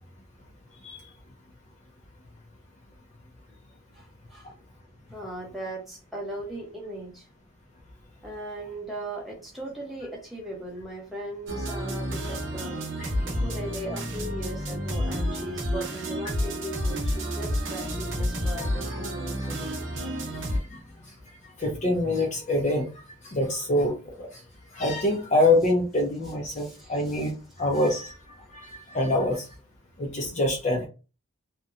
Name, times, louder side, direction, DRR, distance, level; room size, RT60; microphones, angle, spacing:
voice 1, 3.9-4.5 5.1-7.2 8.2-12.7 13.2-19.7 26.5-27.3, right 1 dB, ahead, -3 dB, 0.7 m, -38 dB
sound 1, 11.5-20.6, equal, 60° right, 0.9 m, -30 dB
voice 2, 20.3-20.8 21.6-22.9 23.2-24.3 24.7-28.2 28.5-29.5 30.0-30.9, left 1 dB, 30° left, 0 dB, 0.4 m, -25 dB
2.8 x 2.1 x 2.4 m, 0.32 s
head